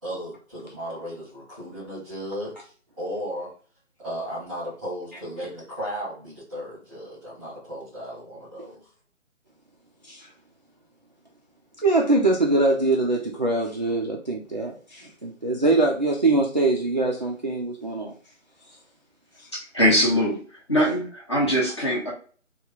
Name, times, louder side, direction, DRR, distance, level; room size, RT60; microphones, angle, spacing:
voice 1, 0.0-3.5 4.0-8.9, equal, 5° right, 0.9 m, -35 dB
voice 2, 11.8-18.1, right 2 dB, 35° right, 0.4 m, -23 dB
voice 3, 19.5-20.4 20.7-22.1, equal, 20° left, 0.7 m, -22 dB
3.0 x 2.3 x 3.4 m
figure-of-eight pair, 160°, 39 cm